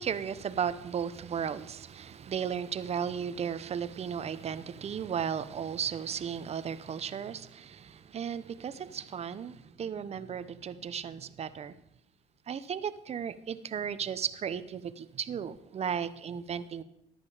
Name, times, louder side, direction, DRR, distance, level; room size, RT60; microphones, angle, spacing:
voice 1, 0.0-11.8 12.5-16.8, right 7 dB, 40° right, 0.8 m, -35 dB
14.0 x 10.5 x 4.9 m
cardioid pair, 110°, 17 cm